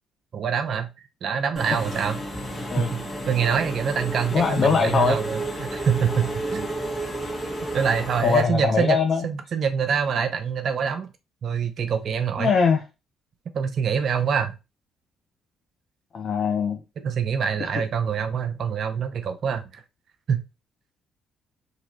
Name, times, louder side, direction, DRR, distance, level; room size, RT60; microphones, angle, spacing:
voice 1, 0.3-0.9 1.2-2.2 2.8-6.7 7.7-9.0 9.2-11.1 11.4-12.5 13.5-14.6 17.0-19.8 20.3-20.4, right 7 dB, 60° right, 8 dB, 0.4 m, -25 dB
Engine / Mechanisms, 1.6-8.4, right 1 dB, 30° left, 1.4 m, -32 dB
voice 2, 4.3-5.2 8.2-9.2 12.4-12.8 16.1-16.8, left 5 dB, 50° left, 4 dB, 0.5 m, -21 dB
2.9 x 2.8 x 2.9 m, 0.27 s
hypercardioid pair, 45°, 0 cm